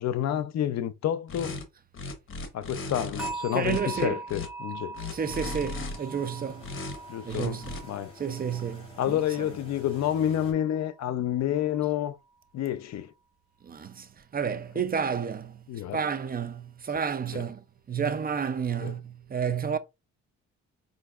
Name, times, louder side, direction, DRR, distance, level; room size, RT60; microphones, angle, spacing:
voice 1, 0.0-1.7 2.5-4.9 7.1-7.6 7.9-8.1 9.0-12.2 12.5-13.1 15.7-16.0 17.3-17.4 18.8-18.9, left 11 dB, 65° left, 0.6 m, -29 dB
sound 1, 1.3-1.6 1.9-3.3 3.6-4.5 4.9-6.0 6.6-7.0 7.3-7.8, left 2 dB, 45° left, 1.0 m, -36 dB
sound 2, 3.2-10.3 10.6-11.0 11.4-11.6, right 3 dB, ahead, 1.5 m, -42 dB
voice 2, 3.5-4.2 5.1-6.7 7.2-7.7 8.2-9.5 13.6-14.1 14.3-15.6 15.9-17.6 17.9-19.8, right 7 dB, 30° right, 0.4 m, -31 dB
sound 3, 5.0-10.5, left 2 dB, 20° left, 2.5 m, -51 dB
5.1 x 2.6 x 2.3 m
cardioid pair, 90°, 30 cm